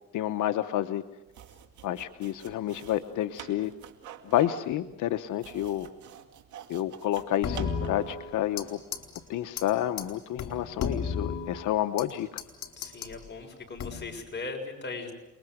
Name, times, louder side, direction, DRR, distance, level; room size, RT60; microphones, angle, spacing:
voice 1, 0.1-1.0 1.8-3.7 4.2-5.9 6.7-8.8 9.3-12.4, left 12 dB, 80° left, 8 dB, 1.0 m, -29 dB
sound 1, 1.3-8.3, right 9 dB, 75° right, 2.4 m, -46 dB
sound 2, 7.4-8.7 8.9-9.2 9.6-9.7 10.0-10.1 10.4-12.1 12.4-13.1 13.8-14.2, left 6 dB, 65° left, 4.3 m, -34 dB
voice 2, 12.8-15.1, left 3 dB, 35° left, 2 dB, 6.8 m, -38 dB
29.0 x 21.5 x 7.9 m, 0.98 s
cardioid pair, 90°, 30 cm